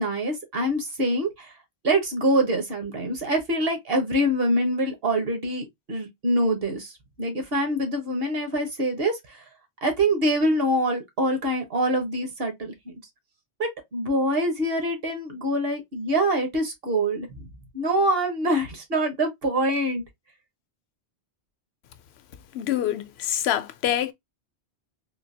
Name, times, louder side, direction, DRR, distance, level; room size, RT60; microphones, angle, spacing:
voice 1, 0.0-1.5 1.8-9.4 9.8-13.0 13.6-17.5 17.7-20.0, right 1 dB, 60° right, 1.4 m, -25 dB
voice 2, 22.5-24.1, left 11 dB, 70° left, 0.8 m, -26 dB
3.8 x 2.8 x 2.7 m
omnidirectional pair, 1.1 m